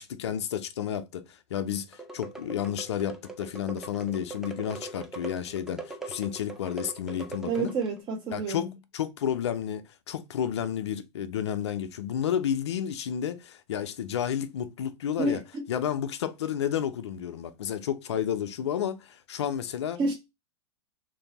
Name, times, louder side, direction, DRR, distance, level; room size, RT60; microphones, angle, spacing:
voice 1, 0.0-7.7 8.3-8.7 8.9-15.4 15.7-20.0, left 9 dB, 75° left, 0.5 m, -31 dB
sound 1, 1.9-8.0, right 3 dB, 5° right, 0.6 m, -42 dB
voice 2, 7.4-8.7 15.2-15.6 20.0-20.1, right 3 dB, 35° right, 0.8 m, -29 dB
3.1 x 2.6 x 4.0 m
hypercardioid pair, 105°, 14 cm